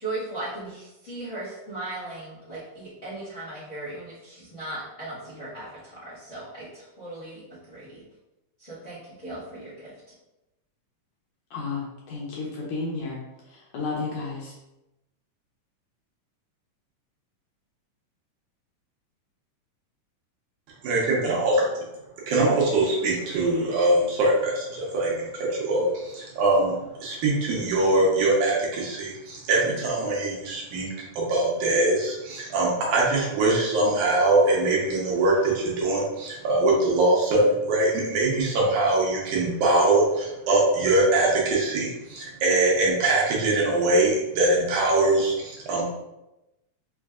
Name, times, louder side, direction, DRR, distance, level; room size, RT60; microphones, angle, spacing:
voice 1, 0.0-8.0 8.6-9.9, right 2 dB, 45° left, -12 dB, 1.0 m, -37 dB
voice 2, 11.5-14.6, left 3 dB, 75° left, -4 dB, 1.8 m, -32 dB
voice 3, 20.8-21.6 22.3-30.9 31.1-45.9, right 2 dB, 75° right, -4 dB, 2.2 m, -22 dB
5.6 x 2.5 x 2.4 m, 0.96 s
omnidirectional pair, 3.7 m